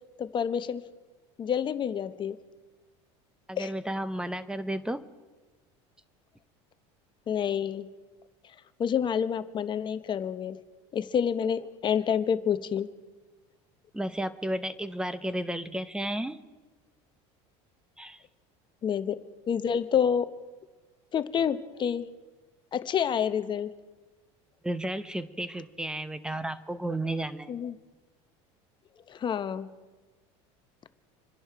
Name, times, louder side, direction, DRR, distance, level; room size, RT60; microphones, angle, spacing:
voice 1, 0.2-0.8 1.4-2.4 3.6-3.7 7.3-7.9 8.8-10.6 10.9-12.9 18.8-19.2 19.5-20.3 21.1-22.1 22.7-23.7 27.5-27.7 29.1-29.7, left 8 dB, 30° left, 12 dB, 0.9 m, -28 dB
voice 2, 3.5-5.0 13.9-16.4 18.0-18.2 24.6-27.5, right 1 dB, 5° right, 14 dB, 0.8 m, -33 dB
27.0 x 11.0 x 4.6 m, 1.3 s
supercardioid pair, 120°, 15 cm